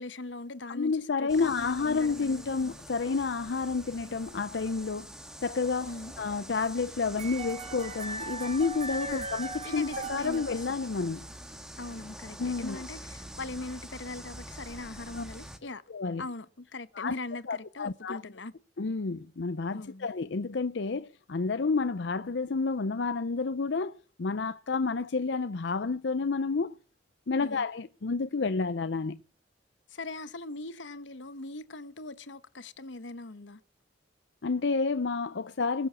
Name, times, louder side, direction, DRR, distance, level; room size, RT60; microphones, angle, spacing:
voice 1, 0.0-2.8 5.8-6.1 9.1-9.3 9.6-10.8 11.8-15.8 16.2-18.5 19.7-20.1 27.4-27.6 29.9-33.6, left 2 dB, 85° left, 1.1 m, -41 dB
voice 2, 0.7-5.1 5.4-5.9 6.2-11.3 12.4-12.8 15.1-15.2 15.9-16.2 17.0-17.1 17.5-18.2 18.8-26.8 27.3-29.2 34.4-35.9, left 4 dB, 70° left, 0.6 m, -30 dB
sound 1, 1.3-15.6, equal, 5° right, 1.7 m, -45 dB
sound 2, 7.2-11.3, right 3 dB, 35° right, 2.6 m, -39 dB
21.0 x 7.1 x 7.5 m
head